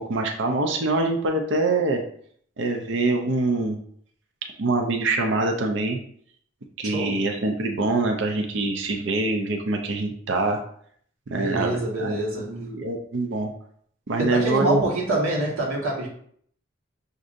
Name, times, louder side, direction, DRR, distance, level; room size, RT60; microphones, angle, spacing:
voice 1, 0.0-2.0 2.6-3.8 4.6-6.0 6.8-10.6 11.3-13.5 14.1-14.8, right 2 dB, 55° right, 4 dB, 0.5 m, -24 dB
voice 2, 6.8-7.2 11.3-12.7 14.2-16.1, right 1 dB, 85° right, -3 dB, 1.3 m, -26 dB
6.2 x 2.6 x 2.5 m, 0.62 s
head